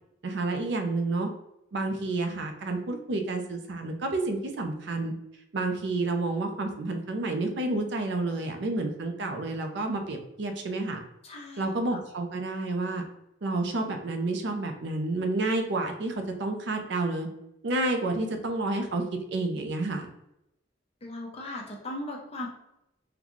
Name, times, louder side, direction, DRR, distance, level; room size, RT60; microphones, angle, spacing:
voice 1, 0.2-1.3 1.7-5.1 5.5-11.0 11.6-13.0 13.4-17.3 17.6-19.0 19.3-20.1, right 2 dB, 65° right, 4 dB, 0.5 m, -30 dB
voice 2, 11.2-11.7 19.0-19.1 21.0-22.5, left 1 dB, 35° left, -1 dB, 0.7 m, -38 dB
3.9 x 2.2 x 3.0 m, 0.84 s
head